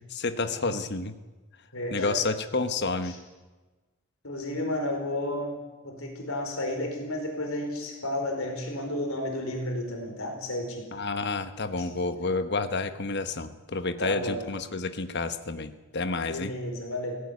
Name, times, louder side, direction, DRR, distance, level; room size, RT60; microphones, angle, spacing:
voice 1, 0.1-1.1 1.9-3.1 10.9-16.5, left 3 dB, 50° left, 9 dB, 1.2 m, -30 dB
voice 2, 1.7-2.2 3.1-3.2 4.2-5.5 5.8-10.9 11.8-11.9 14.0-14.4 16.3-17.2, left 1 dB, 65° left, 3 dB, 4.8 m, -32 dB
17.0 x 16.0 x 9.5 m, 1.2 s
head